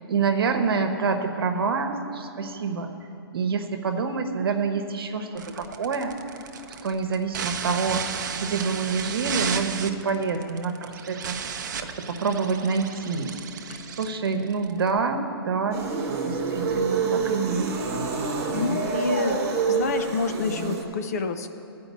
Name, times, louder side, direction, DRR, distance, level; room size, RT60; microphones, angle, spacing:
voice 1, 0.1-2.9 3.3-6.2 6.8-8.0 8.4-13.3 13.9-15.8 16.2-17.7, right 5 dB, 65° right, 6 dB, 1.1 m, -27 dB
sound 1, 5.3-14.9, right 7 dB, 50° right, 0.6 m, -34 dB
sound 2, 15.7-20.8, right 4 dB, 20° right, 0.9 m, -27 dB
voice 2, 18.5-21.5, left 4 dB, 40° left, 8 dB, 0.5 m, -29 dB
13.0 x 5.2 x 8.2 m, 2.8 s
hypercardioid pair, 165°, 13 cm